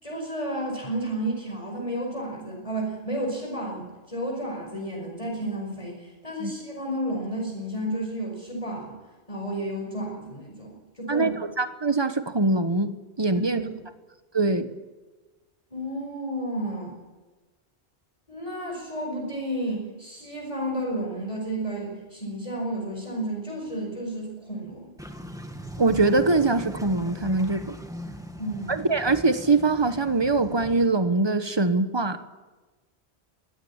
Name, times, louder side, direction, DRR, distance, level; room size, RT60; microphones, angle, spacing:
voice 1, 0.0-9.0 9.3-11.3 13.3-13.7 15.7-17.0 18.3-24.9 28.4-28.8, right 1 dB, 30° left, 0 dB, 5.3 m, -32 dB
voice 2, 11.1-13.6 14.3-14.8 25.8-27.8 28.7-32.2, right 3 dB, 25° right, 10 dB, 1.2 m, -23 dB
sound 1, 25.0-30.9, equal, 5° right, 1.8 m, -40 dB
22.0 x 17.5 x 8.8 m, 1.2 s
omnidirectional pair, 1.1 m